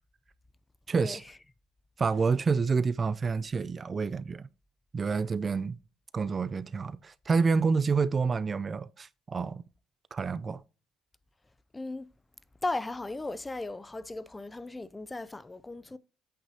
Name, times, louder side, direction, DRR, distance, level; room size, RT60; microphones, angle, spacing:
voice 1, 0.9-1.2 2.0-4.5 4.9-5.8 6.1-9.6 10.1-10.6, right 5 dB, 35° right, 0.4 m, -28 dB
voice 2, 11.7-12.1 12.6-16.0, left 2 dB, 15° left, 0.5 m, -36 dB
8.3 x 5.8 x 2.8 m
supercardioid pair, 80°, 0 cm